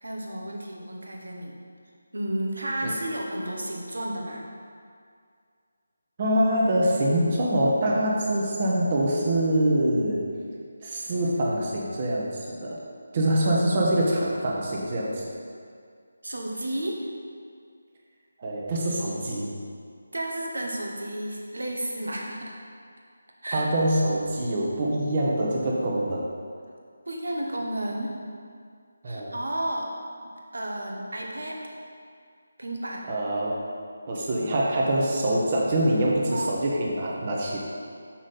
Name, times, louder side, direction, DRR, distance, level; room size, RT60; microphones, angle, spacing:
voice 1, 0.0-1.6 2.1-4.4 16.2-17.1 20.1-22.6 23.4-23.7 27.1-28.1 29.0-29.9 30.5-31.6 32.6-33.0 36.3-36.6, right 1 dB, 75° right, -1 dB, 1.3 m, -32 dB
voice 2, 6.2-10.2 10.8-12.8 13.1-15.3 18.4-19.5 23.5-26.3 29.0-29.4 33.1-33.6 34.1-37.6, right 1 dB, 35° right, -3 dB, 1.3 m, -24 dB
6.3 x 6.0 x 4.3 m, 2.2 s
figure-of-eight pair, 160°, 0 cm